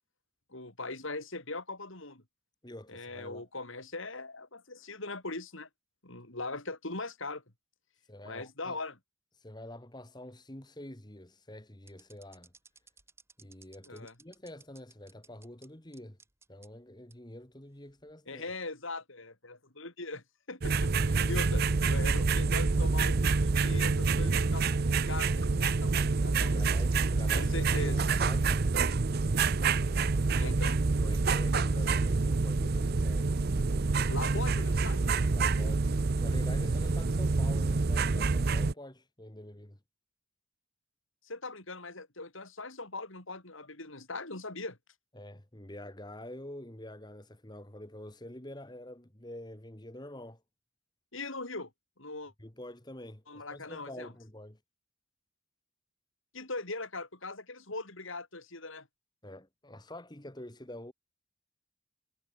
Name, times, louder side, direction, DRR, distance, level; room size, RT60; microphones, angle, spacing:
voice 1, 0.5-2.2 2.9-5.7 6.0-7.4 8.2-9.0 13.9-14.1 18.3-24.7 25.1-26.7 27.3-28.0 30.3-30.8 34.1-35.1 41.2-44.8 51.1-51.7 52.0-52.3 53.3-54.1 56.3-58.9, left 3 dB, 65° left, 4.0 m, -40 dB
voice 2, 2.6-3.5 8.1-8.8 9.4-12.5 13.4-16.2 16.5-18.4 26.5-28.7 31.0-33.3 35.3-39.8 45.1-50.4 52.4-54.6 59.2-60.9, left 1 dB, 20° left, 1.7 m, -47 dB
sound 1, 11.9-15.7 15.9-16.7 17.1-17.2 17.9-18.1, right 4 dB, 10° right, 6.5 m, -58 dB
sound 2, 20.6-38.7, right 4 dB, 45° right, 0.6 m, -27 dB
head